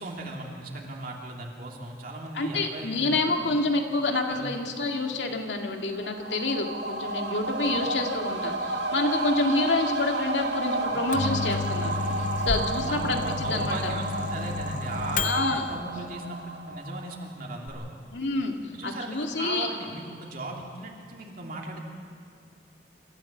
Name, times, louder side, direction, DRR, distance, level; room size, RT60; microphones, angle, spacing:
voice 1, 0.0-3.5 4.3-4.5 7.7-7.9 12.8-17.9 18.6-21.8, right 2 dB, 55° right, -1 dB, 2.8 m, -37 dB
voice 2, 2.3-11.9 12.2-13.7 15.2-15.6 18.1-18.5 18.8-19.7, left 2 dB, 85° left, 3 dB, 2.1 m, -28 dB
sound 1, 5.9-17.3 17.7-17.8, right 2 dB, 80° right, 1.9 m, -32 dB
Microwave oven, 10.9-15.7, left 3 dB, 45° left, 0.8 m, -31 dB
27.0 x 14.5 x 7.4 m, 2.4 s
head